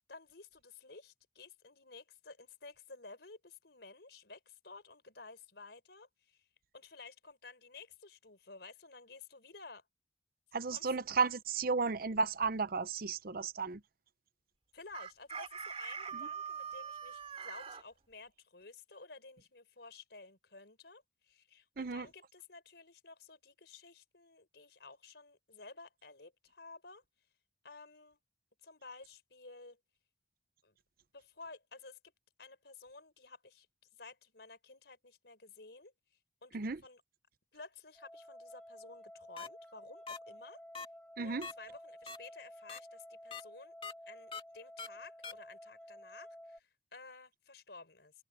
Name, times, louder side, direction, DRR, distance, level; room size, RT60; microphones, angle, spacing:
voice 1, 0.1-6.5 6.7-9.9 10.7-10.9 14.7-27.0 27.6-28.2 28.6-29.8 30.6-30.8 31.1-32.0 32.4-33.7 33.9-35.9 36.4-37.0 37.5-40.6 41.2-43.7 44.1-48.1, left 3 dB, 70° left, 4.8 m, -53 dB
voice 2, 10.5-13.8 21.8-22.1 36.5-36.8 41.2-41.5, right 4 dB, 55° right, 0.7 m, -33 dB
Chicken rooster, 14.9-17.8, right 6 dB, 35° right, 2.7 m, -43 dB
sound 1, 37.9-46.6, equal, 5° left, 3.3 m, -53 dB
sound 2, 39.4-39.5 40.1-40.2 40.7-40.9 41.4-41.5 42.1-42.2 42.7-42.8 43.3-43.4 43.8-43.9 44.3-44.4 44.8-44.9 45.2-45.3, left 5 dB, 30° left, 2.4 m, -42 dB
open air
head